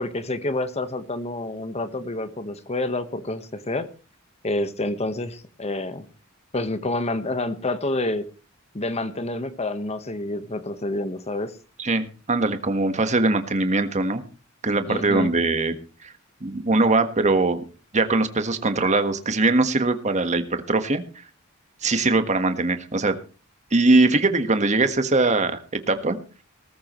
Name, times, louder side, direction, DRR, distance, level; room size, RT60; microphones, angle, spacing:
voice 1, 0.0-3.9 4.4-6.0 6.5-8.3 8.7-11.5 14.9-15.3, left 2 dB, 30° left, 11 dB, 1.3 m, -28 dB
voice 2, 11.8-14.2 14.6-15.7 16.0-16.1 16.4-17.6 17.9-21.0 21.8-23.1 23.7-25.6 25.9-26.2, right 2 dB, 35° right, 8 dB, 1.5 m, -21 dB
18.5 x 14.5 x 3.2 m, 0.34 s
head